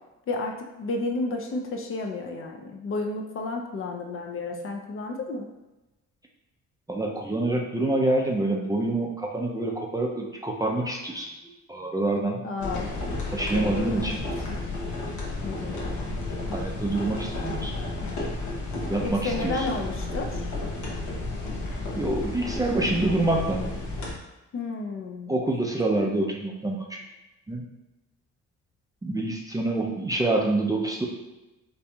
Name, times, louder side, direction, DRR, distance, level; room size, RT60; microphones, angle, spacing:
voice 1, 0.3-5.5 12.4-12.9 13.5-14.1 15.4-15.8 19.0-20.5 24.5-25.3, left 3 dB, 45° left, 2 dB, 0.5 m, -32 dB
voice 2, 6.9-11.3 11.7-12.4 13.3-14.2 16.1-16.3 16.5-17.7 18.9-19.7 22.0-23.7 25.3-27.0 27.5-27.6 29.0-31.1, right 2 dB, 10° right, -1 dB, 0.4 m, -26 dB
sound 1, 12.6-24.1, left 2 dB, 85° left, 0.9 m, -32 dB
4.1 x 2.7 x 2.3 m, 1.0 s
cardioid pair, 90°, 30 cm